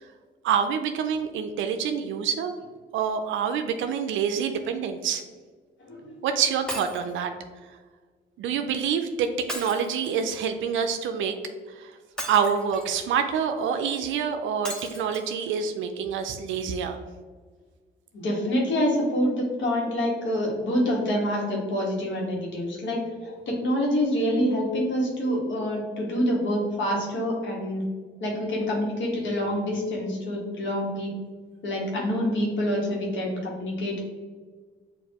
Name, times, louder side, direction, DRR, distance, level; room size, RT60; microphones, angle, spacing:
voice 1, 0.4-2.5 2.9-5.2 6.2-7.3 8.4-11.4 11.8-11.9 12.3-17.0, right 7 dB, 80° right, 7 dB, 0.4 m, -26 dB
Shatter, 6.7-7.1 9.5-10.4 12.2-13.0 14.6-15.2 15.9-16.0 16.2-16.3, equal, 5° left, 0.8 m, -36 dB
voice 2, 18.1-27.8 28.2-31.1 31.6-34.0, equal, 70° left, -2 dB, 1.3 m, -26 dB
6.5 x 2.6 x 2.9 m, 1.5 s
cardioid pair, 90°, 20 cm